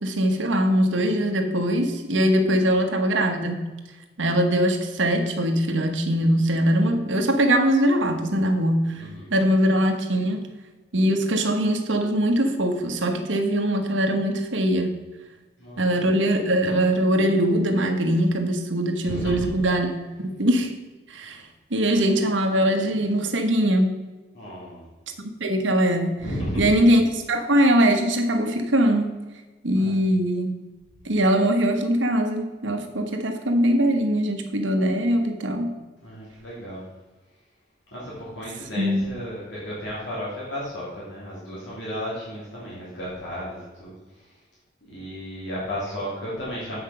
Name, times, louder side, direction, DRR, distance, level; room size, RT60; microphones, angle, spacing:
voice 1, 0.0-3.6 4.2-9.0 9.3-10.5 10.9-14.9 15.8-19.9 20.2-20.7 21.1-21.4 21.7-23.9 25.2-26.2 26.6-29.1 29.6-30.5 31.0-35.7 38.8-39.0, right 1 dB, 80° right, 4 dB, 1.3 m, -22 dB
voice 2, 9.0-9.3 15.6-15.9 19.1-19.5 24.3-24.9 26.2-26.7 29.7-30.1 36.0-36.8 37.9-44.3 44.8-46.8, equal, 70° left, -7 dB, 3.0 m, -34 dB
7.9 x 5.9 x 5.7 m, 1.2 s
head